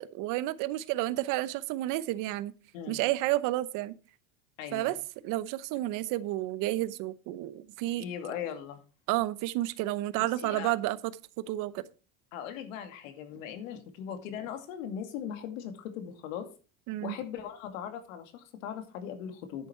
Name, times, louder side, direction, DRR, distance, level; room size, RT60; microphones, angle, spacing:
voice 1, 0.0-2.5 2.9-3.9 4.7-5.0 5.2-8.0 9.1-11.1 11.5-11.8 16.9-17.2, right 16 dB, 55° right, 0.9 m, -31 dB
voice 2, 4.6-5.0 8.0-8.8 10.2-10.8 12.3-16.5 17.0-19.7, left 9 dB, 90° left, 2.4 m, -39 dB
10.5 x 8.3 x 4.4 m
cardioid pair, 150°, 39 cm